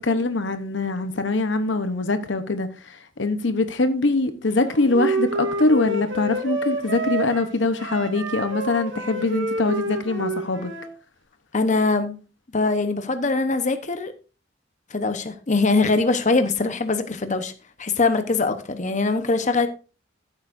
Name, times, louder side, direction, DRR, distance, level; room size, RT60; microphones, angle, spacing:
voice 1, 0.0-10.7, left 2 dB, 70° left, 1.0 m, -23 dB
Wind instrument woodwind instrument, 4.5-10.9, right 2 dB, 80° right, 2.4 m, -28 dB
voice 2, 11.5-12.2 12.5-14.1 14.9-17.5 17.8-19.7, left 3 dB, 40° left, 1.0 m, -22 dB
14.5 x 8.0 x 2.6 m
head